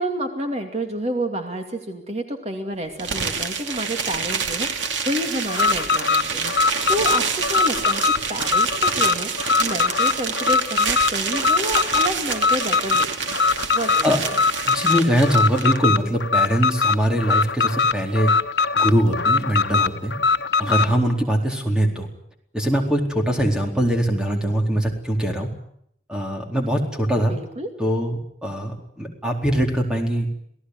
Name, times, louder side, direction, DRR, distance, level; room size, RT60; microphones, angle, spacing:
voice 1, 0.0-8.0 8.3-9.3 9.6-13.4 13.7-14.2 20.6-21.1 27.3-27.7, right 1 dB, 35° right, 4 dB, 2.5 m, -29 dB
sound 1, 3.0-15.8, right 5 dB, 85° right, 2.5 m, -27 dB
Alarm, 5.5-20.9, left 4 dB, 70° left, 1.3 m, -21 dB
voice 2, 14.7-18.3 18.8-20.1 20.6-22.1 22.5-25.5 26.1-27.3 27.8-30.3, equal, 5° right, 2 dB, 4.2 m, -22 dB
28.0 x 17.5 x 9.7 m, 0.72 s
head